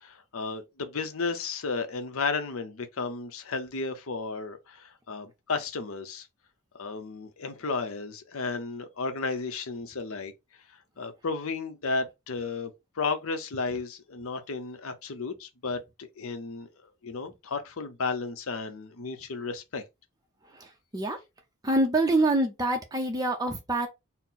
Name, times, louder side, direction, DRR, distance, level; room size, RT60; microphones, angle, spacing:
voice 1, 0.0-6.3 6.8-10.3 11.0-12.7 13.0-16.7 17.0-19.8, left 4 dB, 65° left, 0.7 m, -33 dB
voice 2, 21.6-23.9, right 2 dB, 15° right, 0.5 m, -25 dB
4.2 x 2.0 x 3.9 m
head